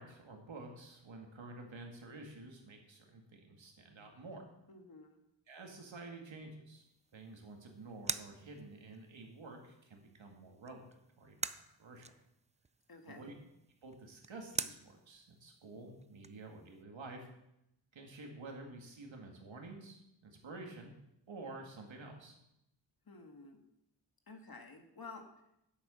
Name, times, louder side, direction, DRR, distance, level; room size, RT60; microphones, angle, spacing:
voice 1, 0.0-4.5 5.5-6.8 7.1-11.5 11.8-12.1 13.1-13.3 13.8-17.3 17.9-20.9 21.3-22.4, right 2 dB, 90° right, 2 dB, 2.3 m, -50 dB
voice 2, 4.7-5.2 12.9-13.3 23.1-23.6 24.3-25.2, left 3 dB, 50° left, 4 dB, 1.8 m, -52 dB
sound 1, 6.8-16.8, right 3 dB, 15° right, 0.4 m, -47 dB
9.9 x 8.2 x 6.4 m, 0.81 s
wide cardioid pair, 105°, 44 cm